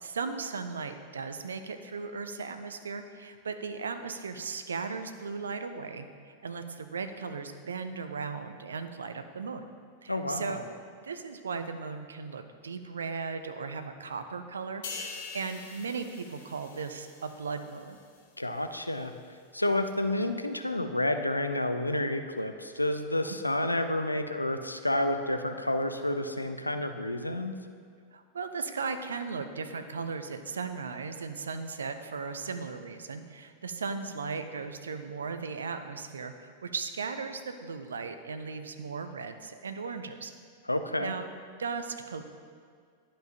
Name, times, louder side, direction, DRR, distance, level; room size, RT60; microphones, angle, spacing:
voice 1, 0.0-9.6 10.0-10.6 11.0-18.0 23.3-23.6 28.1-40.3 41.0-41.3 41.6-42.2, right 5 dB, 70° right, 9 dB, 0.5 m, -37 dB
voice 2, 10.1-10.6 18.4-19.1 19.5-27.6 40.7-41.1, left 1 dB, 85° left, 8 dB, 0.4 m, -30 dB
sound 1, 14.8-18.4 18.7-19.0, left 5 dB, 55° left, 1.0 m, -44 dB
11.0 x 5.2 x 2.8 m, 2.1 s
figure-of-eight pair, 90°, 0 cm